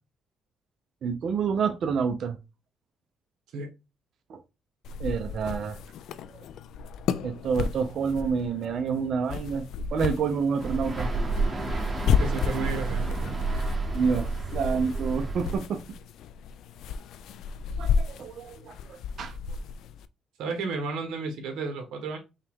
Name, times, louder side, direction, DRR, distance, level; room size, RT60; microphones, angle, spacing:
voice 1, 1.0-2.4 4.3-4.4 5.0-5.8 6.3-6.4 7.2-11.1 13.9-15.8 17.8-19.3, right 6 dB, 60° right, 0.6 m, -28 dB
sound 1, 4.8-20.1, left 6 dB, 75° left, 0.3 m, -33 dB
sound 2, 10.6-15.6, right 3 dB, 30° right, 1.2 m, -30 dB
voice 2, 12.2-13.1 13.4-13.6 20.4-22.2, right 4 dB, 80° right, 1.2 m, -32 dB
5.5 x 2.3 x 3.6 m
cardioid pair, 100°, 0 cm